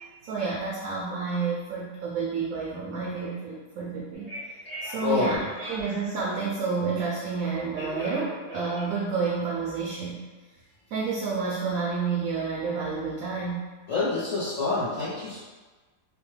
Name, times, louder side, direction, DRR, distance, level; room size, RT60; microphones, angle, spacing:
voice 1, 0.0-4.3 4.8-10.2 10.9-13.6, right 4 dB, 70° right, -5 dB, 0.8 m, -30 dB
Telephone, 4.1-6.6 7.4-9.8, right 1 dB, 25° right, 0.5 m, -39 dB
voice 2, 5.0-5.3 13.9-15.4, left 3 dB, 55° left, -11 dB, 1.0 m, -27 dB
3.0 x 2.2 x 3.1 m, 1.3 s
omnidirectional pair, 1.9 m